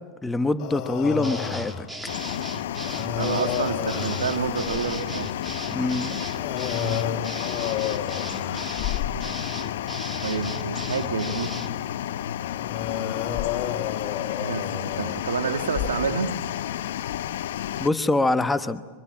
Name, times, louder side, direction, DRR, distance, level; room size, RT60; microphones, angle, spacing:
voice 1, 0.2-1.9 5.7-6.2 17.8-18.8, left 2 dB, 10° left, 10 dB, 1.1 m, -24 dB
sound 1, 0.6-1.9 2.2-2.4 2.8-5.0 5.3-5.5 6.0-9.5 10.1-10.2 11.7-11.8 12.4-16.0, left 9 dB, 40° left, 3.2 m, -31 dB
sound 2, 1.2-11.7, right 1 dB, 10° right, 1.8 m, -38 dB
sound 3, 2.1-17.9, left 11 dB, 70° left, 0.8 m, -31 dB
voice 2, 3.2-5.3 8.5-8.7 10.2-11.5 14.4-16.3, right 6 dB, 85° right, 7 dB, 1.8 m, -28 dB
24.0 x 22.5 x 8.8 m, 1.4 s
hypercardioid pair, 105°, 0 cm